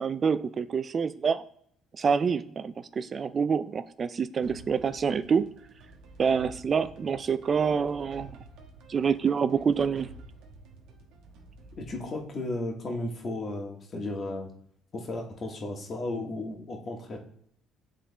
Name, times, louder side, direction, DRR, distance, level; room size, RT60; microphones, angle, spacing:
voice 1, 0.0-1.4 2.0-5.5 6.2-8.4 8.9-10.1, right 6 dB, 40° right, 13 dB, 0.3 m, -27 dB
sound 1, 4.4-13.3, right 3 dB, 75° right, 1.2 m, -51 dB
voice 2, 11.8-14.5 14.9-17.2, left 2 dB, 45° left, 1 dB, 1.6 m, -34 dB
8.4 x 3.7 x 4.1 m, 0.66 s
supercardioid pair, 85°, 0 cm